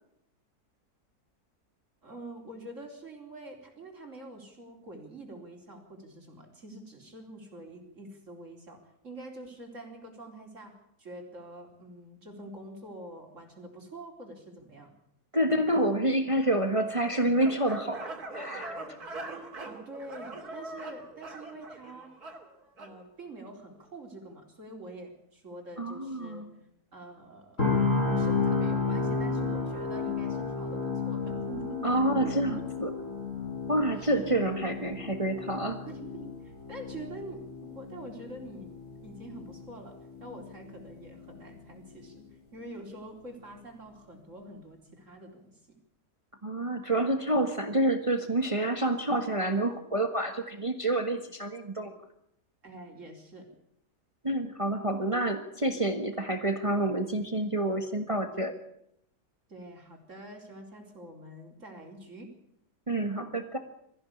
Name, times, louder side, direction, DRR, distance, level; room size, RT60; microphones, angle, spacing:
voice 1, 2.0-10.7 11.0-14.9 15.4-15.6 19.6-22.1 22.8-26.5 26.9-27.6 28.1-32.6 34.0-34.3 35.9-37.4 37.7-38.7 39.0-42.2 42.5-45.6 52.6-53.5 59.5-62.3, right 2 dB, 50° right, 2 dB, 4.5 m, -46 dB
voice 2, 15.3-18.8 25.8-26.5 31.8-32.9 33.7-35.8 46.4-51.9 54.2-58.5 62.9-63.6, right 1 dB, 20° right, 6 dB, 1.6 m, -28 dB
sound 1, 16.9-23.0, right 2 dB, 75° right, 3.4 m, -42 dB
sound 2, 27.6-41.6 41.9-42.1, left 4 dB, 50° left, 7.4 m, -32 dB
22.5 x 15.0 x 8.5 m, 0.74 s
omnidirectional pair, 1.6 m